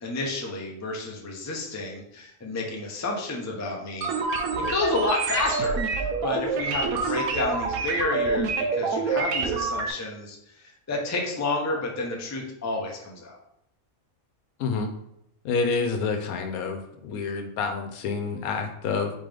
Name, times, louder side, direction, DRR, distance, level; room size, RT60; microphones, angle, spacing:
voice 1, 0.0-4.1 4.6-13.4, left 2 dB, 25° left, 0 dB, 0.4 m, -30 dB
sound 1, 4.0-9.9, right 4 dB, 85° right, 1.1 m, -27 dB
voice 2, 15.4-19.1, left 4 dB, 80° left, 6 dB, 1.1 m, -28 dB
4.1 x 3.8 x 3.3 m, 0.78 s
omnidirectional pair, 1.5 m